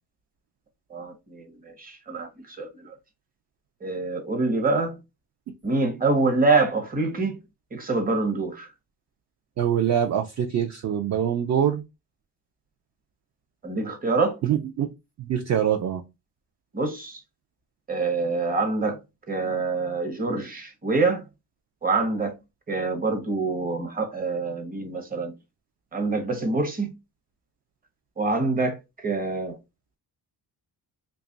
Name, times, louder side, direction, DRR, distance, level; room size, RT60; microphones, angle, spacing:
voice 1, 0.9-2.9 3.8-5.0 5.6-7.4 7.7-8.7 13.6-14.4 16.7-17.2 17.9-19.0 19.3-21.3 21.8-22.4 22.7-25.3 25.9-26.9 28.2-29.6, right 3 dB, 20° right, 0.8 m, -26 dB
voice 2, 9.6-11.8 14.4-14.9 15.3-16.0, right 9 dB, 45° right, 0.4 m, -24 dB
2.9 x 2.3 x 3.8 m
wide cardioid pair, 160°, 39 cm